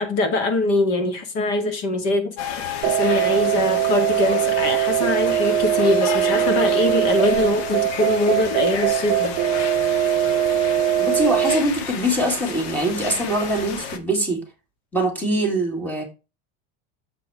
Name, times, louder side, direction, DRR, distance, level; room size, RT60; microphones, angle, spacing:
voice 1, 0.0-9.4, left 2 dB, 45° left, 2.1 m, -23 dB
sound 1, 2.4-14.0, left 7 dB, 65° left, 1.4 m, -32 dB
sound 2, 2.8-11.6, right 11 dB, 30° right, 0.8 m, -21 dB
voice 2, 11.0-14.4 14.9-16.0, right 1 dB, 5° left, 2.1 m, -23 dB
7.6 x 4.7 x 4.7 m
supercardioid pair, 165°, 34 cm